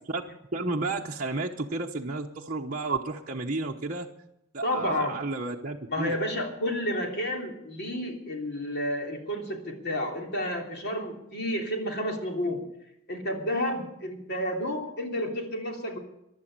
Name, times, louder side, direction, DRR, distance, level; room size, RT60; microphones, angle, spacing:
voice 1, 0.5-4.1 4.5-6.2, right 3 dB, 40° right, -1 dB, 1.0 m, -32 dB
voice 2, 4.6-5.2 5.9-12.6 13.1-16.0, left 1 dB, 50° left, 2 dB, 3.2 m, -31 dB
16.0 x 11.5 x 6.7 m, 0.81 s
head